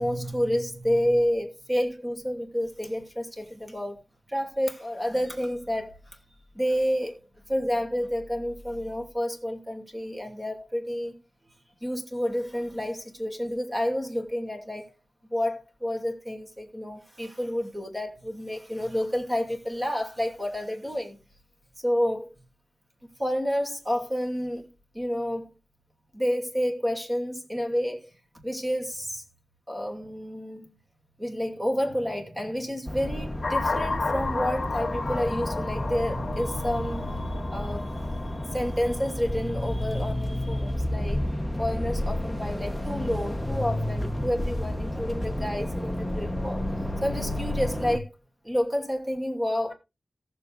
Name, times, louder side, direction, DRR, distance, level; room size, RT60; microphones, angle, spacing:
voice 1, 0.0-4.0 4.3-6.2 6.5-7.2 7.5-11.1 11.8-14.9 15.3-21.2 21.8-22.3 23.2-24.7 24.9-25.5 26.1-28.1 28.4-29.2 29.7-30.7 31.2-41.2 41.6-46.6 47.0-48.1 48.4-49.7, equal, 15° right, 2.6 m, -29 dB
sound 1, 32.9-48.0, left 1 dB, 5° left, 1.0 m, -31 dB
sound 2, 33.4-39.0, left 3 dB, 50° left, 1.5 m, -33 dB
18.0 x 7.0 x 2.5 m
wide cardioid pair, 105°, 0 cm